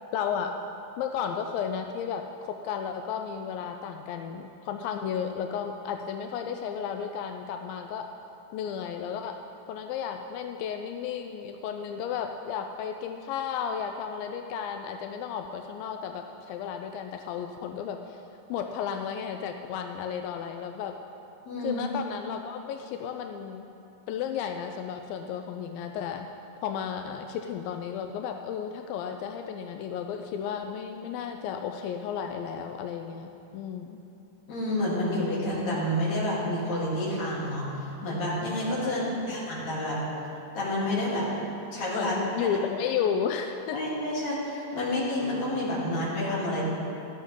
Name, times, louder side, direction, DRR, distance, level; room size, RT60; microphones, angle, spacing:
voice 1, 0.1-0.6 1.0-8.1 8.5-9.4 9.7-18.2 18.5-21.0 21.6-23.7 24.1-26.3 26.6-34.0 38.8-39.4 41.9-43.8, left 7 dB, 90° left, 4 dB, 2.4 m, -33 dB
voice 2, 21.5-21.8 34.5-37.7 38.0-40.0 40.5-41.3 41.7-42.2 43.7-46.6, left 1 dB, 55° left, -8 dB, 4.5 m, -29 dB
17.5 x 13.0 x 3.7 m, 2.9 s
omnidirectional pair, 4.0 m